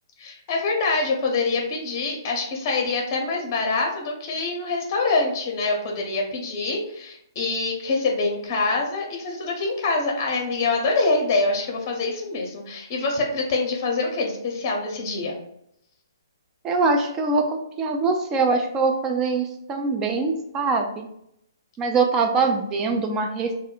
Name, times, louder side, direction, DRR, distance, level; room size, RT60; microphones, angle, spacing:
voice 1, 0.2-15.4, left 3 dB, 35° left, 1 dB, 0.7 m, -25 dB
voice 2, 16.6-21.1 21.8-23.5, right 4 dB, 20° right, 3 dB, 0.4 m, -23 dB
2.1 x 2.0 x 3.8 m, 0.75 s
hypercardioid pair, 145°, 2 cm